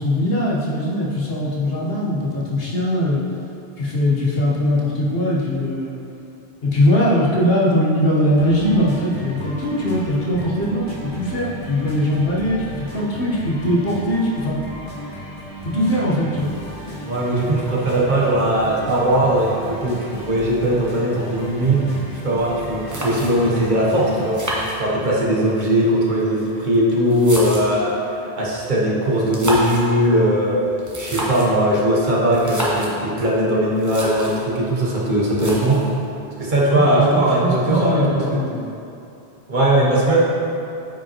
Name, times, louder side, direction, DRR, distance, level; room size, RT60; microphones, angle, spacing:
voice 1, 0.0-3.2 3.8-6.0 6.6-14.6 15.6-16.5 36.7-38.6, left 1 dB, 70° left, -6 dB, 1.4 m, -20 dB
sound 1, 8.4-24.3, right 1 dB, 35° left, 1.3 m, -35 dB
voice 2, 17.0-24.4 24.7-30.6 30.9-35.9 36.4-38.4 39.5-40.2, right 1 dB, 50° right, -5 dB, 1.2 m, -19 dB
sound 2, 22.9-23.6 24.3-25.3 26.2-27.9 29.2-29.9 30.8-31.6 32.3-33.0 33.5-33.6 33.8-34.4 35.4-36.0, right 1 dB, 20° right, 0.9 m, -28 dB
8.8 x 5.1 x 3.0 m, 2.7 s
omnidirectional pair, 1.0 m